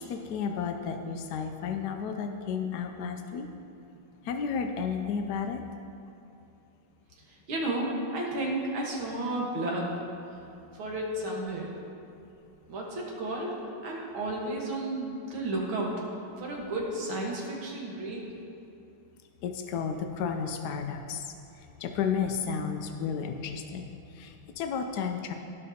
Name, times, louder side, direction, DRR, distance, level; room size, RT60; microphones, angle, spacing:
voice 1, 0.0-3.5 4.2-5.6 19.4-21.3 21.8-25.3, left 6 dB, 85° left, 5 dB, 0.8 m, -32 dB
voice 2, 7.2-9.9 10.7-11.7 12.7-16.0 16.4-18.3, right 1 dB, 75° right, -2 dB, 2.2 m, -32 dB
16.0 x 5.5 x 2.8 m, 2.7 s
omnidirectional pair, 2.3 m